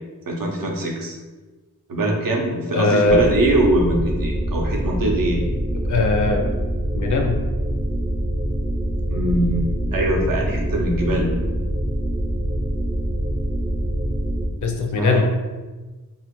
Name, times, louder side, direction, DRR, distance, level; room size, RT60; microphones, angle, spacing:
voice 1, 0.3-1.2 1.9-5.4 9.1-11.3 15.0-15.2, right 1 dB, 65° right, 0 dB, 0.6 m, -22 dB
voice 2, 2.7-3.3 5.8-6.5 6.9-7.4 14.6-15.2, left 3 dB, 55° left, 2 dB, 0.4 m, -20 dB
sound 1, 3.0-14.5, right 1 dB, 30° right, 0.5 m, -24 dB
2.8 x 2.4 x 3.0 m, 1.3 s
wide cardioid pair, 120°, 36 cm